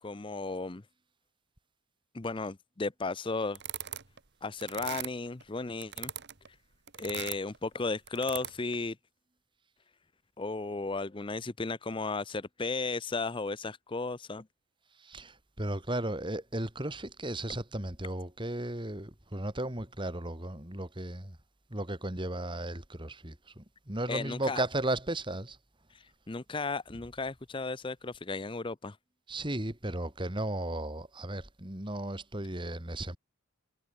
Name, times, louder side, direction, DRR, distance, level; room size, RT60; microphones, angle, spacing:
voice 1, 0.0-0.8 2.1-3.6 4.4-6.1 7.0-9.0 10.4-14.4 24.1-24.6 25.9-29.0, left 3 dB, 25° left, 0.6 m, -35 dB
sound 1, 3.5-4.2 4.6-5.4 5.8-6.5 6.9-7.6 8.1-8.8, right 11 dB, 50° right, 2.0 m, -39 dB
voice 2, 15.0-21.4 21.7-25.6 29.3-33.2, right 1 dB, 20° right, 2.8 m, -35 dB
head